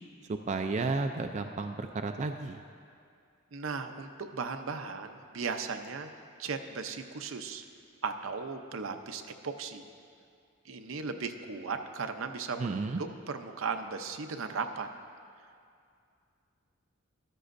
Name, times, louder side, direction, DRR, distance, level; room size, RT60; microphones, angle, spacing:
voice 1, 0.3-2.6 12.6-13.0, right 3 dB, 35° right, 6 dB, 0.4 m, -32 dB
voice 2, 3.5-6.1 6.4-7.6 8.0-9.9 10.6-14.9, right 5 dB, 75° right, 7 dB, 0.6 m, -37 dB
13.5 x 13.0 x 2.6 m, 2.4 s
head